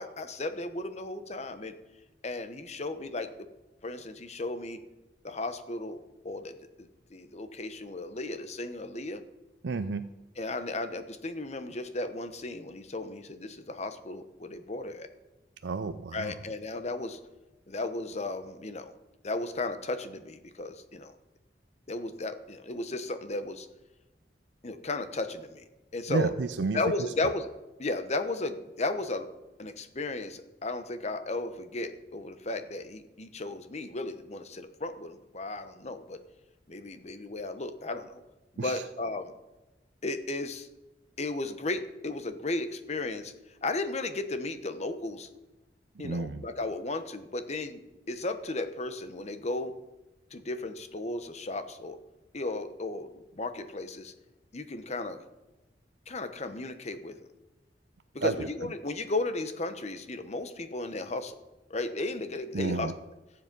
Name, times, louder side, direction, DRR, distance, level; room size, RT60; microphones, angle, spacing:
voice 1, 0.0-1.7 2.2-3.3 3.8-4.8 5.2-9.2 10.4-15.1 16.1-17.2 17.7-18.9 19.2-21.1 21.9-23.7 24.6-25.6 25.9-26.3 26.7-27.5 27.8-29.3 29.6-36.2 36.7-38.2 38.5-39.3 40.0-40.7 41.2-43.3 43.6-45.3 46.0-47.8 48.1-49.7 50.3-52.0 52.3-54.1 54.5-55.2 56.1-57.2 58.1-61.3 61.7-62.9, left 2 dB, 40° left, 10 dB, 1.0 m, -35 dB
voice 2, 9.6-10.0 15.6-16.3 26.1-27.1 38.6-38.8 46.0-46.4 58.2-58.5 62.5-62.9, right 4 dB, 80° right, 9 dB, 0.5 m, -31 dB
15.5 x 7.6 x 5.4 m, 1.0 s
head